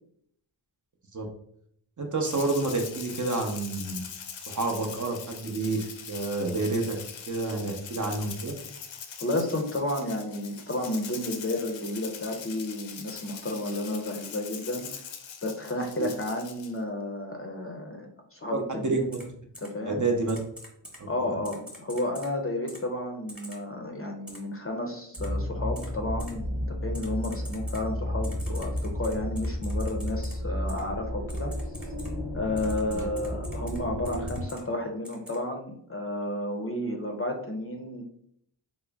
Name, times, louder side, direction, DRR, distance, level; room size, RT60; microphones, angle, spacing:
voice 1, 2.0-4.0 4.5-7.0 7.3-8.5 16.0-16.1 18.5-19.3 19.8-20.4 21.0-21.1 32.9-33.1, right 3 dB, 40° right, 3 dB, 0.7 m, -29 dB
Rattle (instrument), 2.2-16.8, left 7 dB, 80° left, 0.5 m, -42 dB
voice 2, 9.2-15.0 15.4-19.1 19.6-20.0 21.1-31.5 32.3-38.0, left 1 dB, 30° left, 2 dB, 0.5 m, -32 dB
Typing, 19.1-19.2 19.5-19.7 20.3-21.0 21.4-22.3 22.7-22.8 23.3-23.6 24.3-24.4 25.1-25.3 25.8-25.9 26.2-26.3 26.9-27.8 28.2-30.3 30.7-30.8 31.3-32.1 32.6-33.8 34.1-34.6 35.0-35.4, equal, ahead, 1.1 m, -45 dB
sound 1, 25.2-34.4, equal, 60° right, 1.0 m, -32 dB
3.6 x 2.0 x 3.3 m, 0.69 s
wide cardioid pair, 55°, 45 cm